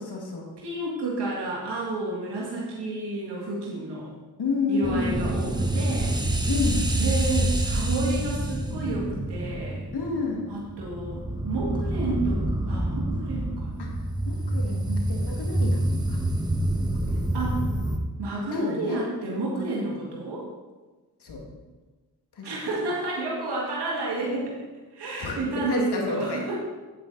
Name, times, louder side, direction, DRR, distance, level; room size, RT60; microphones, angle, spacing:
voice 1, 0.0-0.5 4.4-5.4 6.5-6.8 9.9-10.4 13.8-14.0 14.2-15.8 16.1-16.2 16.9-17.3 18.5-19.0 21.2-21.4 22.3-22.5 25.2-26.4, left 4 dB, 80° left, 0 dB, 2.2 m, -30 dB
voice 2, 0.6-4.1 4.7-6.2 7.0-9.8 10.5-13.9 14.8-15.1 17.3-17.6 18.2-20.5 22.4-24.6 24.9-26.6, right 2 dB, 85° right, -4 dB, 2.1 m, -30 dB
sound 1, 4.8-18.0, right 1 dB, 10° right, 1.4 m, -27 dB
9.0 x 8.8 x 4.1 m, 1.3 s
cardioid pair, 45°, 39 cm